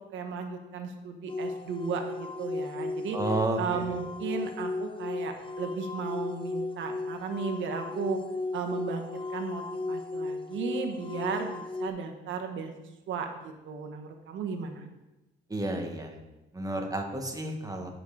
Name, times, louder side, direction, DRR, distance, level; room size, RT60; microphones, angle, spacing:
voice 1, 0.1-3.2 3.6-8.2 8.5-12.7 13.1-14.8, right 6 dB, 75° right, 4 dB, 1.4 m, -35 dB
sound 1, 1.3-11.9, left 3 dB, 25° left, 0.6 m, -35 dB
voice 2, 3.1-4.0 15.5-16.1 16.5-17.9, right 2 dB, 15° right, 3 dB, 1.6 m, -31 dB
9.5 x 5.7 x 5.0 m, 1.0 s
cardioid pair, 90°, 20 cm